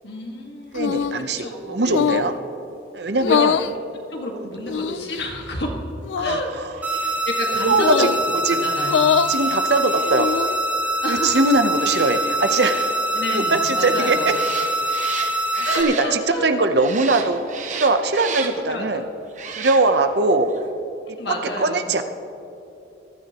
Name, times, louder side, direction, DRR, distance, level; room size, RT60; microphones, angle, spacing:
voice 1, 0.0-0.9 1.1-2.2 3.0-3.6 4.1-5.8 6.2-6.5 6.9-8.2 8.6-9.2 11.0-11.5 13.1-14.3 15.6-16.5 18.6-19.1 21.2-21.9, left 1 dB, 65° left, 1 dB, 1.8 m, -30 dB
sound 1, 0.7-1.2 1.9-2.3 3.2-3.7 4.7-5.2 6.0-6.4 7.8-8.2 8.8-9.3 10.0-10.6, left 7 dB, 85° left, 0.3 m, -22 dB
voice 2, 0.7-2.3 2.9-3.6 6.2-6.7 7.6-8.6 9.3-10.3 11.1-12.9 13.3-14.2 15.6-17.4 17.7-19.0 19.6-20.5 21.1-21.2 21.6-22.0, right 3 dB, 65° right, 8 dB, 0.7 m, -21 dB
sound 2, 6.7-16.5 16.8-18.8 19.3-20.2 20.5-20.6, right 6 dB, 40° right, 1.0 m, -36 dB
sound 3, 6.8-15.8, right 1 dB, 10° right, 1.5 m, -24 dB
21.5 x 12.5 x 3.0 m, 2.9 s
head